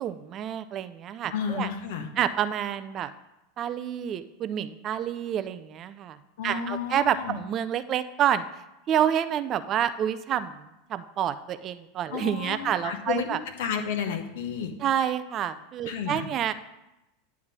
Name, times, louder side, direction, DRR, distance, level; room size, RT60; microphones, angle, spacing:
voice 1, 0.0-1.7 2.2-3.1 3.6-6.2 6.4-8.4 8.9-10.6 10.9-13.4 14.8-16.5, right 10 dB, 35° right, 12 dB, 0.4 m, -28 dB
voice 2, 1.3-2.1 6.4-7.4 12.1-14.7 15.9-16.3, left 7 dB, 60° left, 6 dB, 0.9 m, -32 dB
9.7 x 3.6 x 6.0 m, 0.92 s
figure-of-eight pair, 85°, 0 cm